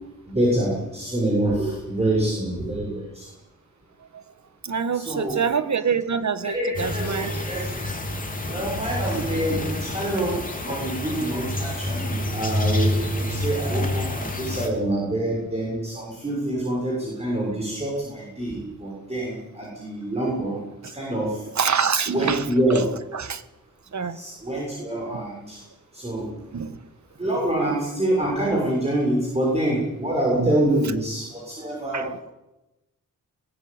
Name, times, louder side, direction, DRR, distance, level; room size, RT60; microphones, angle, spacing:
voice 1, 0.3-3.3 4.9-5.4 6.4-7.7 8.5-10.3 10.7-20.6 20.9-21.4 22.1-22.8 24.1-25.6 25.9-26.3 27.2-32.2, right 1 dB, 20° right, -4 dB, 6.6 m, -26 dB
voice 2, 4.6-7.3 9.1-9.3 21.5-22.5 23.1-23.4 23.9-24.2 25.1-25.2 26.5-26.8 30.4-30.5 31.9-32.1, right 6 dB, 55° right, 12 dB, 1.5 m, -25 dB
sound 1, 6.7-14.7, left 1 dB, 25° left, 3.6 m, -28 dB
22.0 x 18.5 x 8.9 m, 0.98 s
wide cardioid pair, 155°, 34 cm